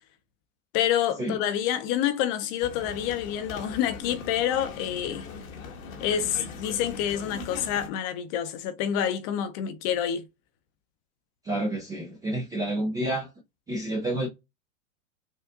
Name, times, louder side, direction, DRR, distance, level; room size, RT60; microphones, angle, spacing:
voice 1, 0.7-5.3 6.0-10.3, left 10 dB, 35° left, 0.6 m, -27 dB
sound 1, 2.6-7.9, left 4 dB, 80° left, 1.3 m, -40 dB
voice 2, 11.4-13.3 13.7-14.3, right 1 dB, 10° right, 0.3 m, -29 dB
4.4 x 2.5 x 2.4 m
hypercardioid pair, 130°, 40 cm